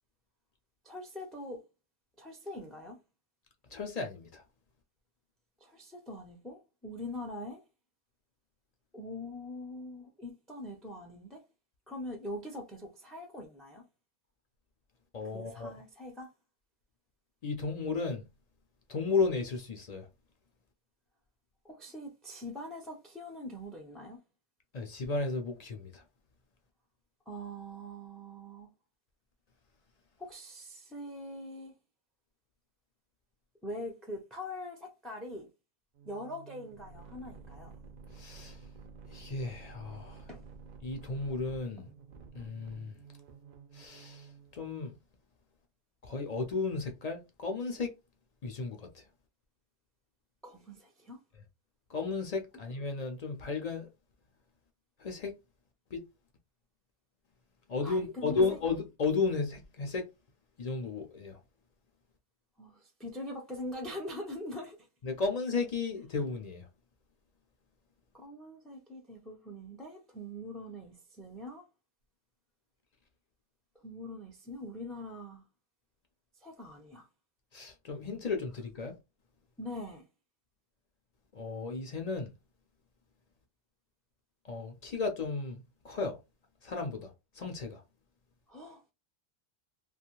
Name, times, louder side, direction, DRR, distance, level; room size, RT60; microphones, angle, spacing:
voice 1, 0.8-1.6 2.2-3.0 5.6-7.6 8.9-11.4 11.9-13.8 15.3-16.3 21.6-24.2 27.3-28.7 30.2-31.7 33.6-35.5 36.0-37.7 40.3-40.4 50.4-51.2 57.8-58.6 62.6-64.9 68.1-71.6 73.8-75.4 76.4-77.1 79.6-80.0 88.5-88.9, left 1 dB, ahead, 0.4 m, -43 dB
voice 2, 3.7-4.4 15.1-15.7 17.4-18.2 18.9-20.1 24.7-26.0 38.1-38.6 39.1-40.2 40.8-41.9 42.3-42.9 43.7-44.9 46.0-47.9 48.4-49.0 51.9-53.9 55.0-55.3 55.9-56.0 57.7-60.0 60.6-61.4 65.0-66.7 77.5-78.9 81.3-82.3 84.4-86.2 86.6-87.8, left 4 dB, 50° left, 0.5 m, -34 dB
sound 1, 35.9-44.6, right 4 dB, 55° right, 0.5 m, -51 dB
2.6 x 2.3 x 2.9 m
omnidirectional pair, 1.0 m